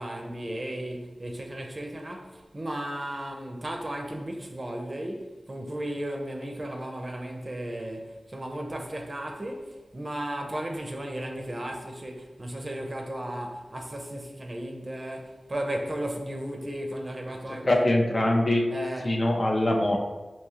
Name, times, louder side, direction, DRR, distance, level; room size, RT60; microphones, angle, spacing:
voice 1, 0.0-17.8 18.7-19.2, right 1 dB, 40° right, 0.5 m, -35 dB
voice 2, 17.6-18.7 19.0-20.0, left 1 dB, 40° left, 0.5 m, -23 dB
3.6 x 2.8 x 2.8 m
cardioid pair, 50°, 0 cm